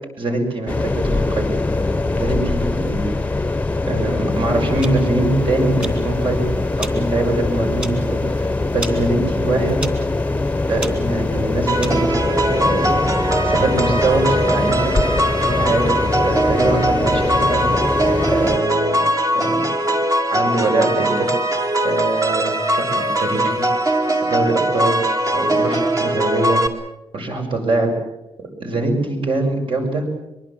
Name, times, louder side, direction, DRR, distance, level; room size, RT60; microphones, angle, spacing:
voice 1, 0.2-1.5 1.8-3.0 3.9-6.5 6.8-9.8 10.7-12.1 12.5-16.0 16.2-17.6 18.3-19.0 19.3-19.6 20.3-21.3 21.8-23.5 24.3-25.0 25.3-26.6 27.1-27.9 28.6-30.0, right 2 dB, 55° right, 3 dB, 6.5 m, -23 dB
sound 1, 0.7-18.6, left 2 dB, 15° left, 1.0 m, -22 dB
sound 2, 4.3-12.1, right 1 dB, 10° right, 2.8 m, -36 dB
sound 3, 11.7-26.7, right 1 dB, 30° right, 2.3 m, -20 dB
24.0 x 23.0 x 7.5 m, 0.93 s
wide cardioid pair, 150°, 11 cm